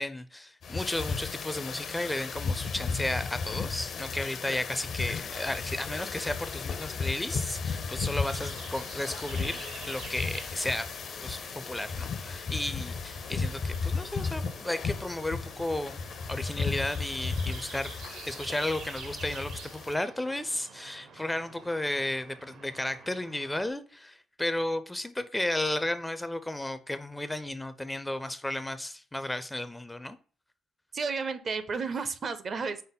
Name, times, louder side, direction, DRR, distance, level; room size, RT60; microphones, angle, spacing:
voice 1, 0.0-10.9 11.2-16.0 16.3-18.0 18.3-30.2, left 1 dB, 10° left, 0.4 m, -33 dB
sound 1, 0.6-19.9, left 5 dB, 60° left, 0.6 m, -35 dB
sound 2, 8.2-23.7, right 4 dB, 75° right, 0.8 m, -48 dB
voice 2, 30.9-32.8, right 5 dB, 45° right, 0.5 m, -32 dB
5.2 x 2.0 x 3.9 m
cardioid pair, 90°, 0 cm